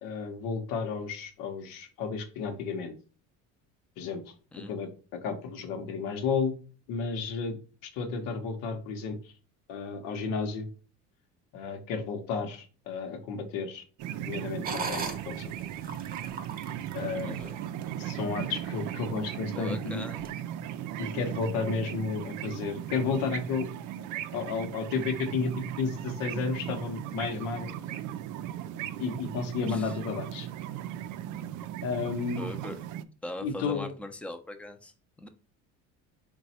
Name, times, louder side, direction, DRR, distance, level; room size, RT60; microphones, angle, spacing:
voice 1, 0.0-2.9 4.0-6.5 6.9-7.6 7.8-9.3 9.7-10.7 11.5-13.8 14.3-15.5 16.9-17.4 18.0-20.0 21.0-23.7 24.3-27.7 29.0-30.5 31.8-32.5 33.4-33.9, left 5 dB, 75° left, 0.9 m, -32 dB
sound 1, 14.0-33.0, right 11 dB, 60° right, 0.4 m, -37 dB
sound 2, 14.6-18.1 18.6-18.7 19.2-19.6 20.2-20.3, right 4 dB, 25° right, 0.8 m, -39 dB
voice 2, 17.2-17.5 19.5-20.3 29.7-29.9 32.4-32.8 33.2-35.3, left 1 dB, 5° left, 0.5 m, -40 dB
3.9 x 2.3 x 4.1 m
supercardioid pair, 85°, 35 cm